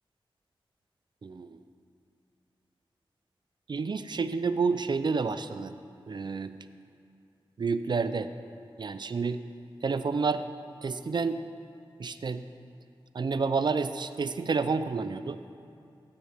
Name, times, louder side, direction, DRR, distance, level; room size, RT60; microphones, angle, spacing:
voice 1, 1.2-1.6 3.7-5.7 6.1-6.6 7.6-8.3 8.8-9.4 9.8-10.5 10.8-11.4 12.0-12.4 13.1-15.4, right 4 dB, 50° right, 11 dB, 0.5 m, -29 dB
16.5 x 9.1 x 3.5 m, 2.6 s
wide cardioid pair, 70°, 9 cm